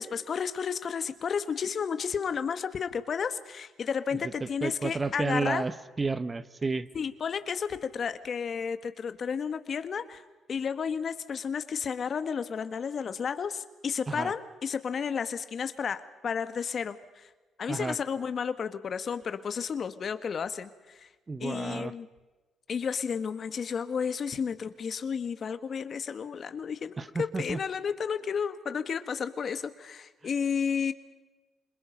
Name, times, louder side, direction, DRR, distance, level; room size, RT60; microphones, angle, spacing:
voice 1, 0.0-5.6 6.9-10.2 10.5-17.3 17.6-21.1 21.4-22.1 22.7-30.9, left 6 dB, 50° left, 12 dB, 1.5 m, -32 dB
voice 2, 4.2-6.9 14.1-14.3 17.7-18.0 21.3-21.9 27.0-27.6, right 3 dB, 25° right, 14 dB, 1.0 m, -31 dB
28.0 x 21.5 x 5.3 m, 1.2 s
cardioid pair, 90°, 0 cm